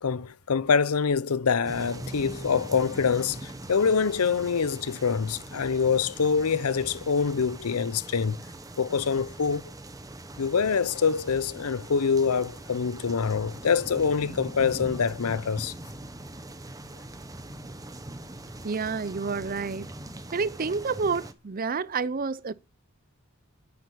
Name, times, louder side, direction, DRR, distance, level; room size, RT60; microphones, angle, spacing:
voice 1, 0.0-8.4 8.8-9.7 10.4-15.7, left 6 dB, 80° left, 0.6 m, -25 dB
sound 1, 1.6-21.3, right 1 dB, 15° right, 1.0 m, -42 dB
voice 2, 18.6-19.9 20.3-22.5, right 4 dB, 40° right, 0.6 m, -29 dB
9.0 x 8.3 x 8.4 m
head